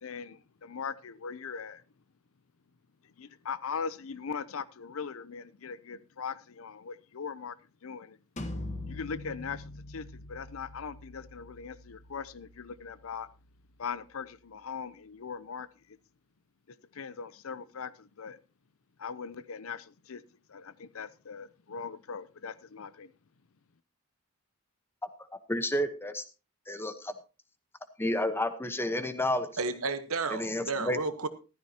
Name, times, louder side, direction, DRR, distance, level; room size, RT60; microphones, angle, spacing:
voice 1, 0.0-1.8 3.2-7.6 7.8-8.2 8.9-13.3 13.8-16.0 16.7-18.4 19.0-20.2 20.5-23.1, left 6 dB, 65° left, 0.6 m, -40 dB
sound 1, 8.4-14.0, left 1 dB, 35° left, 1.3 m, -44 dB
voice 2, 25.5-26.2 26.7-27.1 28.0-29.5 30.3-31.0, left 1 dB, 10° left, 1.0 m, -30 dB
voice 3, 29.6-31.3, right 4 dB, 70° right, 1.2 m, -32 dB
14.5 x 13.0 x 2.8 m
head